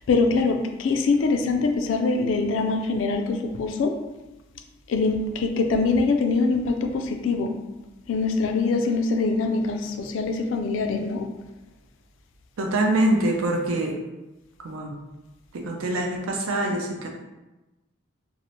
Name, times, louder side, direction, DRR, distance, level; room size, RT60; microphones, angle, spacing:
voice 1, 0.1-3.9 4.9-7.5 8.1-11.3, left 3 dB, 65° left, 5 dB, 0.3 m, -23 dB
voice 2, 12.6-13.9 14.6-15.0 15.5-17.1, right 1 dB, 85° right, 2 dB, 0.5 m, -24 dB
2.7 x 2.0 x 2.9 m, 1.0 s
head